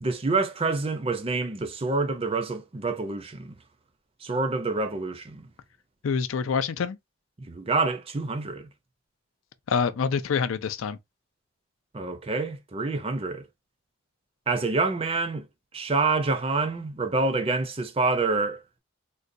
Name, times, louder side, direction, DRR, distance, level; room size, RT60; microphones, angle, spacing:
voice 1, 0.0-3.6 4.2-5.5 7.4-8.7 11.9-13.5 14.5-15.5 15.7-18.8, right 3 dB, 30° right, 0.5 m, -27 dB
voice 2, 6.0-7.0 9.7-11.0, left 6 dB, 80° left, 0.4 m, -26 dB
3.8 x 2.2 x 2.5 m
head